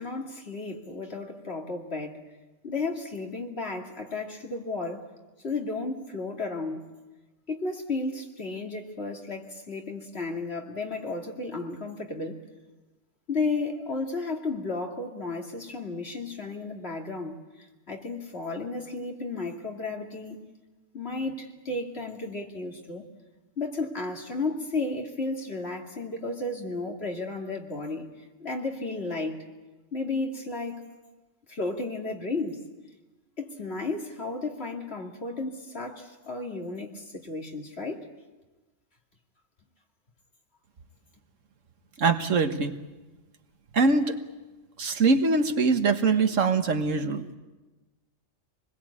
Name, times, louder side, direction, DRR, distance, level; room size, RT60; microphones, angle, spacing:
voice 1, 0.0-2.2 2.6-5.0 5.4-6.9 7.5-12.4 13.3-20.4 20.9-23.0 23.6-28.1 28.4-29.4 29.9-30.8 31.5-32.6 33.4-38.1, left 3 dB, 50° left, 1 dB, 2.8 m, -33 dB
voice 2, 42.0-42.8 43.7-44.1 44.8-47.2, right 4 dB, 70° right, 7 dB, 1.7 m, -23 dB
26.5 x 21.0 x 8.5 m, 1.2 s
omnidirectional pair, 1.3 m